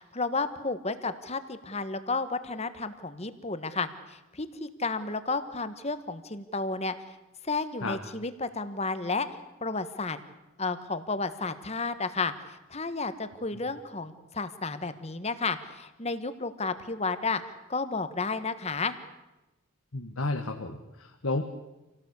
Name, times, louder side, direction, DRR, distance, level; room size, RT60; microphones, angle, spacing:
voice 1, 0.0-6.9 7.4-9.3 9.6-10.2 10.6-17.4 17.7-18.9, left 3 dB, 30° left, 11 dB, 1.5 m, -32 dB
voice 2, 19.9-21.4, left 2 dB, 75° left, 4 dB, 1.8 m, -32 dB
27.5 x 18.0 x 8.4 m, 1.0 s
head